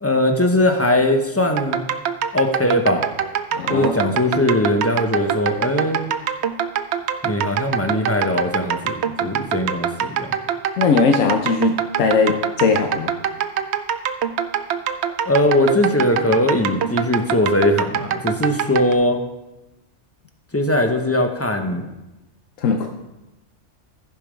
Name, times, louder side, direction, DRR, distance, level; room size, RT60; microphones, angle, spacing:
voice 1, 0.0-1.8 2.3-3.1 3.7-6.1 7.2-10.3 15.3-19.2 20.5-21.9, left 1 dB, 15° left, 4 dB, 0.7 m, -20 dB
sound 1, 1.6-18.9, right 8 dB, 65° right, 0.8 m, -24 dB
voice 2, 3.5-3.9 10.8-13.1 22.6-22.9, left 5 dB, 80° left, 4 dB, 1.1 m, -19 dB
14.5 x 5.3 x 5.0 m, 1.0 s
omnidirectional pair, 1.3 m